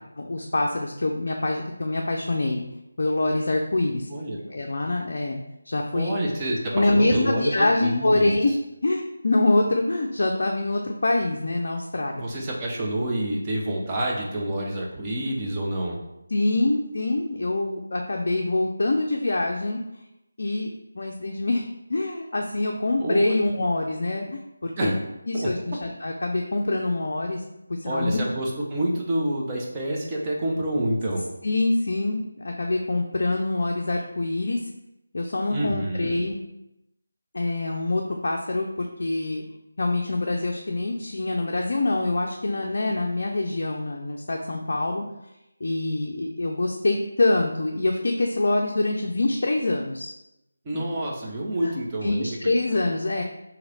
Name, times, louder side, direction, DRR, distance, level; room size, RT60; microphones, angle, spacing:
voice 1, 0.2-2.6 3.0-4.1 4.5-6.1 6.7-8.5 8.8-12.2 16.3-19.8 20.4-20.7 21.0-21.6 21.9-24.9 25.3-27.4 27.7-28.2 31.4-34.6 35.1-36.4 37.3-39.4 39.8-45.0 45.6-50.1 50.7-50.9 51.6-51.7 52.0-53.2, left 2 dB, 55° left, 1 dB, 0.4 m, -25 dB
voice 2, 4.1-4.5 5.9-8.3 12.2-16.0 23.0-23.4 24.8-24.9 25.3-25.8 27.8-31.2 35.5-36.2 50.6-52.8, right 1 dB, 20° right, -3 dB, 0.6 m, -28 dB
3.1 x 2.8 x 3.8 m, 0.87 s
figure-of-eight pair, 160°, 0 cm